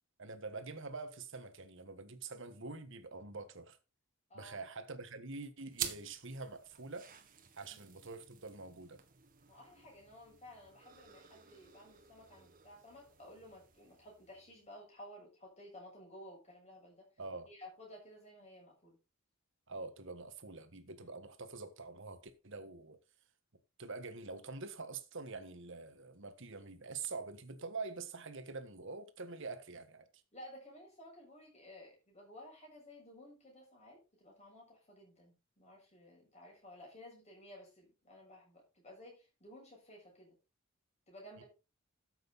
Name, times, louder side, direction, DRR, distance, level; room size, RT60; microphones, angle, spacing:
voice 1, 0.2-3.8 4.3-7.1 7.6-9.0 17.2-17.5 19.7-23.0 23.8-30.1 41.4-41.5, right 3 dB, 65° right, 1.5 m, -45 dB
voice 2, 4.3-4.7 7.6-7.8 9.5-17.1 17.5-19.0 21.0-21.1 30.3-40.4 41.1-41.5, left 1 dB, 30° left, 7.6 m, -55 dB
sound 1, 5.7-14.7, right 9 dB, 40° right, 1.7 m, -49 dB
12.5 x 7.9 x 4.1 m
head